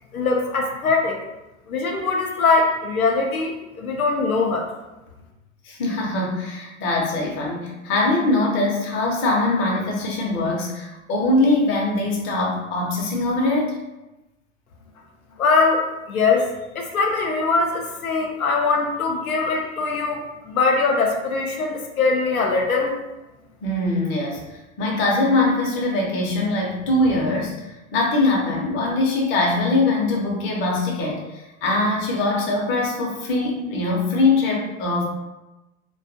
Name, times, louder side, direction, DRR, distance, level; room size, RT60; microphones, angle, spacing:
voice 1, 0.1-1.2 1.7-4.7 15.4-16.5 16.7-23.0, left 4 dB, 90° left, 1 dB, 0.5 m, -22 dB
voice 2, 5.6-13.8 23.6-24.4 24.8-35.0, left 2 dB, 30° left, -1 dB, 0.6 m, -22 dB
2.5 x 2.3 x 2.5 m, 1.0 s
figure-of-eight pair, 90°, 41 cm